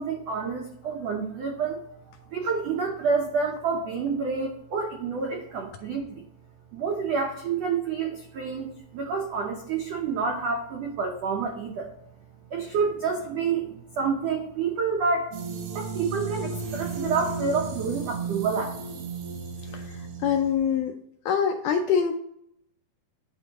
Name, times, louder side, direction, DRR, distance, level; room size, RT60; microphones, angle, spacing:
voice 1, 0.0-1.8 2.3-6.2 6.7-11.9 12.5-15.3 15.7-19.0, right 5 dB, 85° right, 1 dB, 1.4 m, -28 dB
sound 1, 15.3-20.5, right 4 dB, 70° right, 2.5 m, -34 dB
voice 2, 20.2-20.9 21.3-22.1, left 7 dB, 80° left, 5 dB, 1.9 m, -24 dB
10.5 x 3.6 x 2.9 m, 0.75 s
omnidirectional pair, 4.1 m